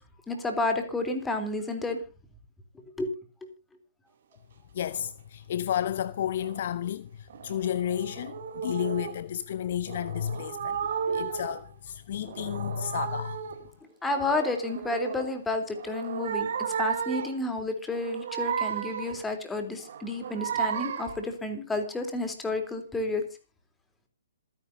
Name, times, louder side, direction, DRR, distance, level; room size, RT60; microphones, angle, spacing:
voice 1, 0.3-2.0 3.0-3.1 11.0-11.3 14.0-16.5 16.8-23.2, left 2 dB, 10° left, 3.4 m, -31 dB
voice 2, 4.7-10.8 11.1-13.4, left 10 dB, 50° left, 0.9 m, -32 dB
sound 1, 4.8-5.1 6.4-6.7 7.3-9.2 9.9-11.7 12.1-13.6 14.1-15.3 15.7-17.4 17.9-19.3 19.8-21.2, right 7 dB, 50° right, 2.7 m, -34 dB
26.5 x 10.5 x 2.7 m
figure-of-eight pair, 125°, 0 cm